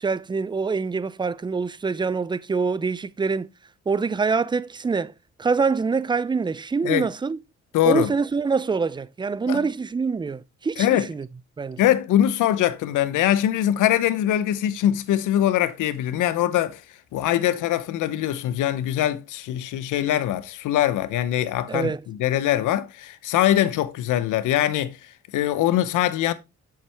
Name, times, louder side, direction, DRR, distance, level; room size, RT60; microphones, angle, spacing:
voice 1, 0.0-3.5 3.9-5.1 5.4-7.4 7.8-11.3 11.6-11.8 21.7-22.0, right 4 dB, 15° right, 0.4 m, -25 dB
voice 2, 7.7-8.1 9.5-9.6 10.8-11.1 11.8-16.8 17.1-25.0 25.3-26.3, left 12 dB, 85° left, 0.9 m, -22 dB
7.4 x 7.4 x 3.4 m
cardioid pair, 90°, 30 cm